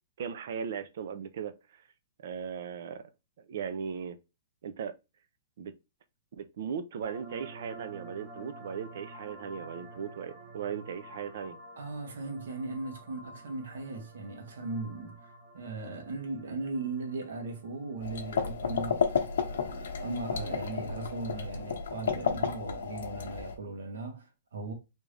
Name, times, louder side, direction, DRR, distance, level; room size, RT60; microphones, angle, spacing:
voice 1, 0.2-1.8 2.2-3.0 3.4-4.2 4.6-5.0 5.6-5.7 6.3-11.6, right 7 dB, 50° right, 0.4 m, -38 dB
sound 1, 7.0-21.6, right 2 dB, 15° right, 0.8 m, -51 dB
voice 2, 11.8-24.7, right 3 dB, 85° right, 1.1 m, -38 dB
sound 2, 18.0-23.5, left 6 dB, 75° left, 0.8 m, -32 dB
3.4 x 2.6 x 3.2 m
hypercardioid pair, 175°, 0 cm